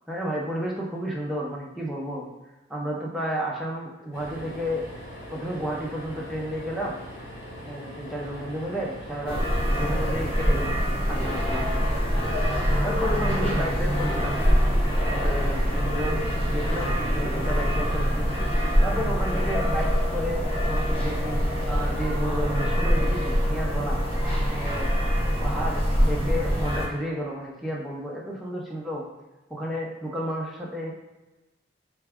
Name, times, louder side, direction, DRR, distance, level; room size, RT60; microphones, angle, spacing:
voice 1, 0.1-2.3 2.7-4.8 5.3-7.0 7.6-9.4 9.8-10.8 11.1-11.8 12.8-14.4 15.1-18.3 18.8-21.4 21.7-24.0 24.5-24.9 25.4-29.0 29.5-30.9, equal, ahead, -4 dB, 0.6 m, -32 dB
sound 1, 4.1-19.4 21.1-21.3 21.5-21.6, equal, 60° left, 1.3 m, -41 dB
sound 2, 9.3-26.9, equal, 35° left, 1.0 m, -24 dB
3.9 x 2.3 x 3.4 m, 1.1 s
head